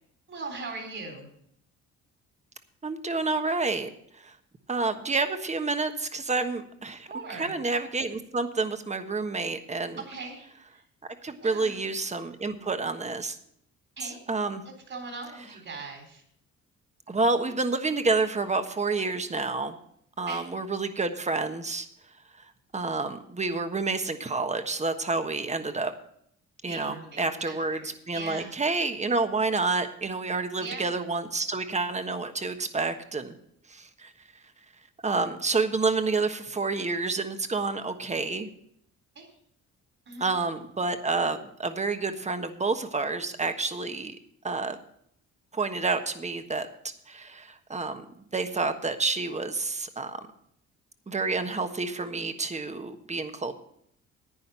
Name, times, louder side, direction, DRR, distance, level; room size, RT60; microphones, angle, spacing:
voice 1, 0.3-1.3 7.1-7.6 10.0-10.8 11.4-11.8 14.0-14.2 14.9-16.2 20.3-20.4 26.7-28.5 30.6-30.9 39.2-39.3 40.1-40.4, right 3 dB, 45° right, 0 dB, 3.7 m, -40 dB
voice 2, 2.8-4.3 4.7-10.0 11.2-13.4 14.0-14.6 17.1-19.8 20.2-21.9 22.7-25.9 26.6-27.8 28.1-33.3 33.7-34.1 35.0-38.5 40.2-44.2 44.4-44.8 45.5-46.7 47.1-48.0 48.3-50.2 51.1-53.5, right 3 dB, 25° right, 8 dB, 1.3 m, -29 dB
10.5 x 9.4 x 5.6 m, 0.69 s
cardioid pair, 90°, 30 cm